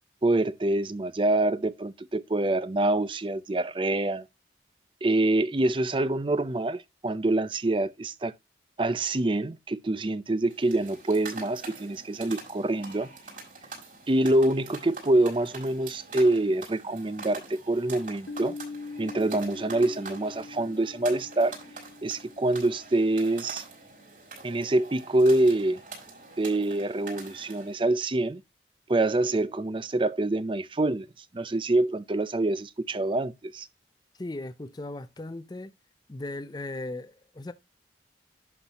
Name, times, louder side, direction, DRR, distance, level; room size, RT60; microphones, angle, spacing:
voice 1, 0.2-4.3 5.0-8.3 8.8-13.1 14.1-18.5 19.0-21.6 22.0-23.6 24.4-25.8 26.4-28.4 28.9-31.1 31.3-33.7, right 2 dB, 30° right, 0.5 m, -26 dB
sound 1, 10.4-27.8, right 3 dB, 45° right, 5.2 m, -45 dB
Piano, 18.3-23.6, left 3 dB, 85° left, 1.6 m, -43 dB
voice 2, 34.2-35.7 36.1-37.5, left 2 dB, 20° left, 0.5 m, -37 dB
11.0 x 5.9 x 2.9 m
head